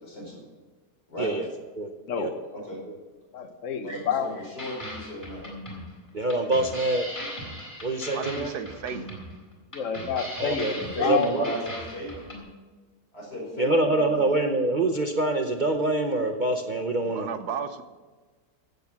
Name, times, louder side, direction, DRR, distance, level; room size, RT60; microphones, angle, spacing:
voice 1, 0.0-0.4 1.1-1.3 2.5-2.8 3.8-4.3 4.5-5.5 10.7-12.1 13.1-14.2, equal, 85° left, 5.4 m, -35 dB
voice 2, 2.1-2.5 3.3-4.6 9.7-11.3, left 7 dB, 50° left, 1.3 m, -29 dB
sound 1, 4.6-12.4, equal, 10° left, 4.1 m, -39 dB
voice 3, 6.1-7.1 7.8-8.5 10.4-10.7 11.1-11.5 13.6-17.3, right 2 dB, 45° right, 0.7 m, -25 dB
voice 4, 8.1-9.1 17.1-17.8, right 7 dB, 75° right, 1.4 m, -34 dB
15.5 x 8.2 x 6.0 m
omnidirectional pair, 1.8 m